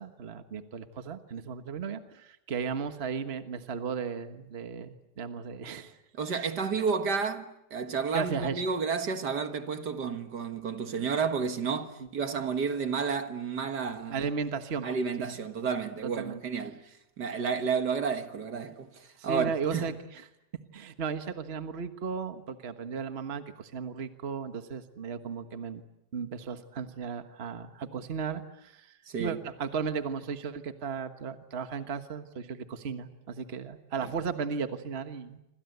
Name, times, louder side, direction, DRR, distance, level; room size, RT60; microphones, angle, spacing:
voice 1, 0.0-5.9 6.3-6.5 8.1-8.6 14.1-14.9 16.2-16.4 19.2-20.2 20.7-25.8 26.1-28.9 29.2-35.4, right 5 dB, 35° right, 1.5 m, -35 dB
voice 2, 6.1-14.2 14.8-16.8 17.2-19.9 29.1-29.4, right 5 dB, 65° right, 2.1 m, -31 dB
26.5 x 26.5 x 8.1 m
omnidirectional pair, 1.9 m